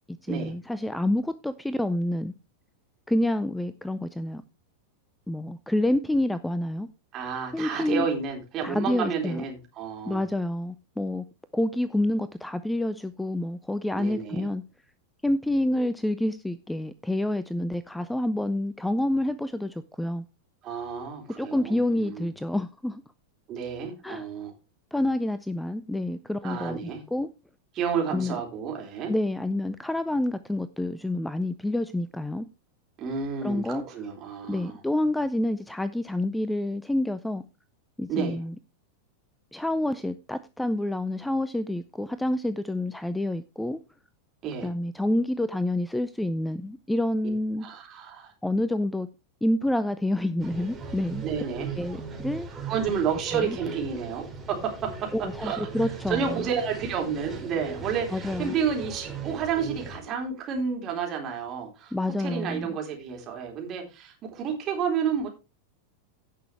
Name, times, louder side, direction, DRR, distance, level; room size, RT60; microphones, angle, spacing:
voice 1, 0.1-2.3 3.1-4.4 5.3-6.9 7.5-8.1 8.6-9.4 10.1-11.2 11.5-14.6 15.2-20.2 21.4-23.0 24.0-24.3 24.9-27.3 28.1-28.4 29.1-32.5 33.4-33.8 34.5-37.4 38.0-38.5 39.5-43.8 44.6-47.7 48.4-49.1 49.4-51.2 51.8-52.5 53.3-53.6 55.1-56.5 58.1-58.5 61.9-62.7, left 1 dB, 5° left, 0.5 m, -28 dB
voice 2, 7.1-10.2 14.0-14.5 20.6-22.3 23.5-24.5 26.4-27.0 27.7-29.1 33.0-34.8 38.1-38.4 44.4-44.7 47.6-48.3 51.2-51.7 52.7-55.1 55.4-61.9 62.2-65.3, right 6 dB, 30° right, 3.8 m, -30 dB
sound 1, 50.4-60.0, right 5 dB, 15° right, 3.2 m, -38 dB
17.0 x 6.1 x 3.3 m
figure-of-eight pair, 90°, 0 cm